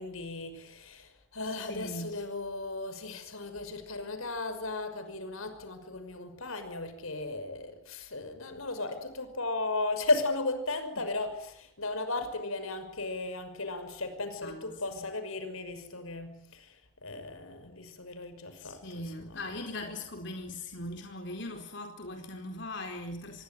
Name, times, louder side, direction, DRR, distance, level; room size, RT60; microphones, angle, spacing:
voice 1, 0.0-16.8 17.0-18.8 19.2-19.4, left 2 dB, 85° left, 5.9 m, -35 dB
voice 2, 1.6-2.2 14.4-15.0 18.6-23.4, left 1 dB, 55° left, 4.4 m, -40 dB
26.5 x 22.5 x 9.4 m
head